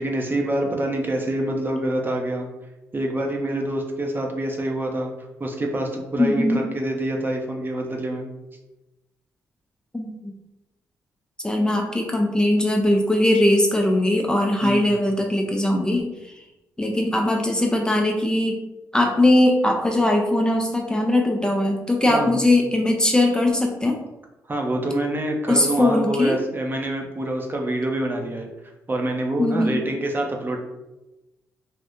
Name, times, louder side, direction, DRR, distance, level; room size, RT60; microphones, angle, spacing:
voice 1, 0.0-2.5 2.9-5.1 5.4-8.3 14.6-15.0 22.1-22.4 24.5-28.5 28.9-30.6, right 1 dB, 30° right, 1 dB, 0.8 m, -26 dB
voice 2, 6.2-6.6 9.9-10.3 11.4-16.4 16.8-18.6 18.9-24.0 25.5-26.4 29.4-29.8, left 1 dB, 10° left, 1 dB, 0.6 m, -20 dB
2.7 x 2.4 x 3.5 m, 0.99 s
supercardioid pair, 55°, 7 cm